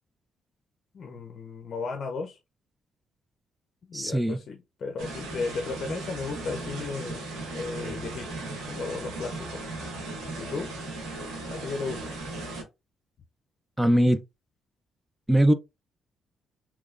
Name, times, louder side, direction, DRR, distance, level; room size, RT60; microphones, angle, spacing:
voice 1, 0.9-2.4 3.8-7.2 7.5-9.6 10.4-10.7 11.5-12.2, left 4 dB, 55° left, 0.5 m, -35 dB
voice 2, 3.9-4.4 13.8-14.2 15.3-15.5, right 1 dB, 10° right, 0.3 m, -21 dB
sound 1, 5.0-12.6, right 2 dB, 90° right, 1.3 m, -37 dB
3.3 x 3.0 x 2.4 m
cardioid pair, 90°, 0 cm